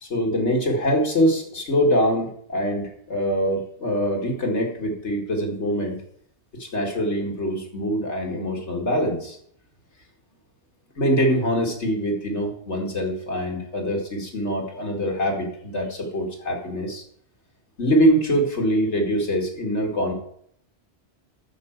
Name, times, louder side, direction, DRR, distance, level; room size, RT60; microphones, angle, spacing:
voice 1, 0.0-6.0 6.6-9.4 11.0-17.0 17.8-20.1, equal, 85° left, 1 dB, 2.5 m, -24 dB
12.0 x 4.9 x 7.9 m, 0.65 s
omnidirectional pair, 1.1 m